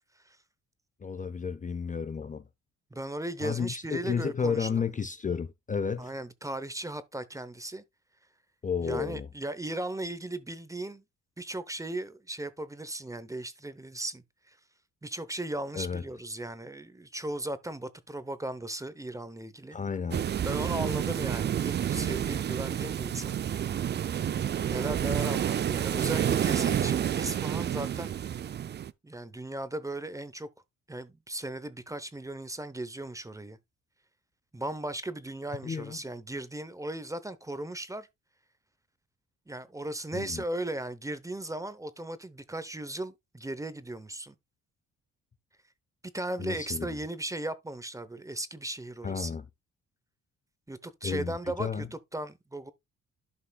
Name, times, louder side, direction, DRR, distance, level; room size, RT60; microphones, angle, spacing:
voice 1, 1.0-2.4 3.4-6.1 8.6-9.3 15.7-16.0 19.7-20.2 35.6-36.0 40.1-40.4 46.4-46.9 49.0-49.4 51.0-51.9, left 6 dB, 25° left, 0.5 m, -32 dB
voice 2, 2.9-4.7 6.0-7.8 8.8-11.0 11.4-14.6 15.0-19.8 20.4-23.4 24.7-28.2 29.0-30.5 30.9-33.6 34.5-38.1 39.5-44.3 46.1-49.3 50.7-52.7, right 1 dB, 10° right, 0.8 m, -37 dB
sound 1, 20.1-28.9, right 9 dB, 35° right, 0.4 m, -29 dB
11.5 x 5.4 x 2.3 m
cardioid pair, 90°, 30 cm